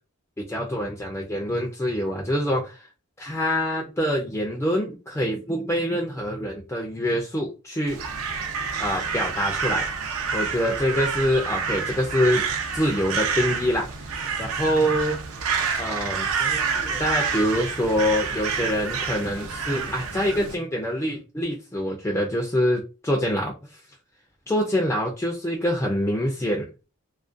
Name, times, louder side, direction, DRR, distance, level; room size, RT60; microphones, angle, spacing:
voice 1, 0.4-2.9 3.2-8.0 8.8-9.8 10.3-12.4 12.7-15.2 15.8-23.5 24.5-26.7, equal, 10° left, 0 dB, 0.3 m, -25 dB
Crow, 7.9-20.5, right 5 dB, 70° right, 0.4 m, -28 dB
2.4 x 2.2 x 2.5 m, 0.31 s
head